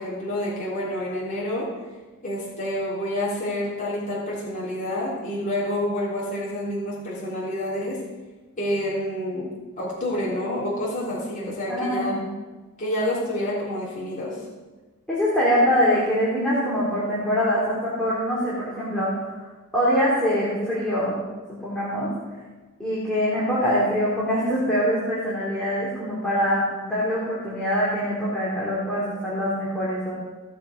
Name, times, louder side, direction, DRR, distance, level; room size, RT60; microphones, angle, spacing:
voice 1, 0.0-1.7 2.2-8.0 8.6-9.5 9.8-12.2 12.8-14.4, left 1 dB, 35° left, -6 dB, 3.5 m, -28 dB
voice 2, 11.7-12.2 15.1-19.3 19.7-21.2 21.5-22.1 22.8-30.1, equal, 5° left, -9 dB, 3.2 m, -24 dB
17.0 x 7.3 x 5.2 m, 1.3 s
head